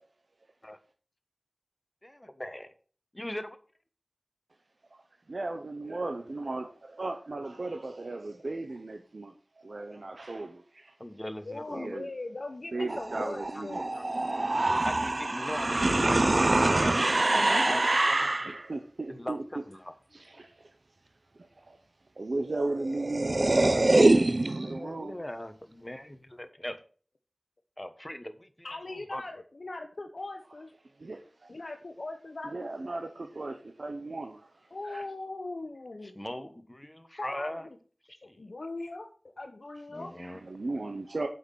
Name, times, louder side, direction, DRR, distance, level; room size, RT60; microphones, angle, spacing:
voice 1, 2.0-2.7 3.1-3.6 9.9-10.0 11.0-11.9 13.5-13.6 13.9-14.0 14.8-16.2 17.3-18.5 19.1-19.9 24.6-26.8 27.8-29.3 36.0-37.7 38.3-38.4 39.9-40.4, left 1 dB, 20° left, 10 dB, 1.2 m, -40 dB
voice 2, 4.9-10.9 11.7-12.1 12.7-13.9 14.3-14.9 18.5-19.4 20.1-20.8 21.3-21.8 22.2-25.2 31.0-31.5 32.4-35.0 40.2-41.3, right 2 dB, 75° right, 5 dB, 0.9 m, -37 dB
voice 3, 11.5-13.9 28.6-30.7 31.5-32.7 34.7-36.2 37.2-37.5 38.4-39.1 39.4-40.1, left 2 dB, 70° left, 4 dB, 1.0 m, -39 dB
sound 1, 12.9-18.6 22.5-22.6 22.8-24.8, right 2 dB, 50° right, 0.6 m, -25 dB
7.8 x 5.7 x 6.8 m, 0.40 s
wide cardioid pair, 60°, 0 cm